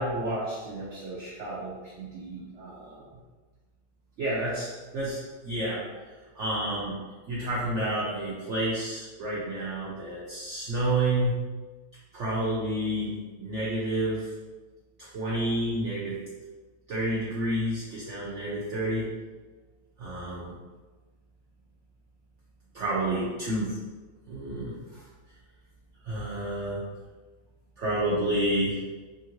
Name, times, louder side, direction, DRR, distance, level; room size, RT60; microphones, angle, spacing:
voice 1, 0.0-3.0 4.2-5.8 6.4-7.0 7.3-11.3 12.1-14.3 15.0-16.2 16.9-19.1 20.0-20.5 22.7-23.8 24.3-25.0 26.0-26.8 27.8-28.8, right 1 dB, 80° right, -6 dB, 0.6 m, -30 dB
3.0 x 2.5 x 2.9 m, 1.3 s
omnidirectional pair, 1.9 m